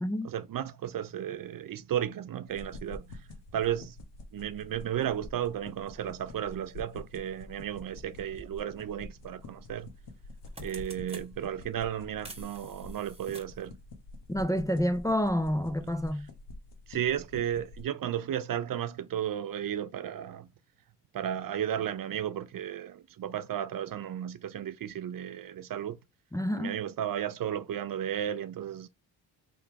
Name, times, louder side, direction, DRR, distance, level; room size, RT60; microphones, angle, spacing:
voice 1, 0.2-3.2 3.5-4.0 4.3-9.9 10.6-13.7 16.9-20.5 21.1-26.0 26.6-28.9, right 10 dB, 55° right, 0.5 m, -34 dB
sound 1, 2.5-17.8, left 2 dB, 75° left, 1.2 m, -47 dB
sound 2, 8.4-8.5 9.8-10.0 10.3-11.3 12.2-13.7, right 2 dB, 15° right, 1.3 m, -48 dB
voice 2, 14.3-16.3 26.3-26.8, equal, 10° left, 0.5 m, -28 dB
3.9 x 2.9 x 4.5 m
cardioid pair, 65°, 42 cm